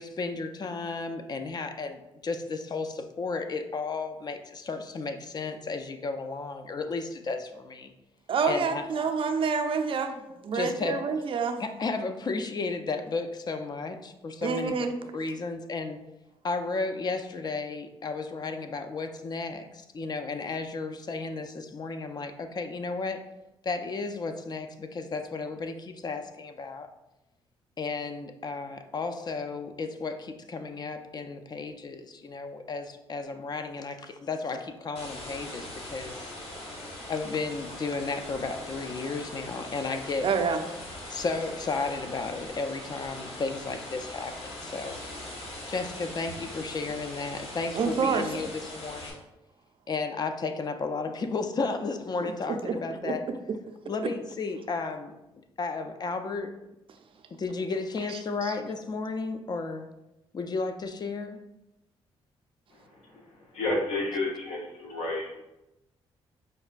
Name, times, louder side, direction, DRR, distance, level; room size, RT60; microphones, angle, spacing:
voice 1, 0.0-7.9 8.5-8.9 10.5-11.0 11.6-14.9 15.1-16.0 16.4-23.2 23.6-26.9 27.8-36.3 37.1-40.3 40.6-40.7 41.1-45.0 45.7-49.2 49.9-53.3 53.9-55.1 55.6-56.5 57.4-59.9 60.3-61.4, left 4 dB, 35° left, 7 dB, 0.4 m, -33 dB
voice 2, 8.3-10.2 10.4-11.6 14.4-14.9 40.2-40.6 47.8-48.3 52.2-52.3 52.6-52.7 53.0-53.1, right 5 dB, 50° right, 6 dB, 0.4 m, -27 dB
sound 1, 35.0-49.1, left 1 dB, 55° left, 1.0 m, -41 dB
voice 3, 62.7-65.5, left 2 dB, 80° left, -2 dB, 0.9 m, -32 dB
5.1 x 2.2 x 2.4 m, 0.94 s
supercardioid pair, 70°, 11 cm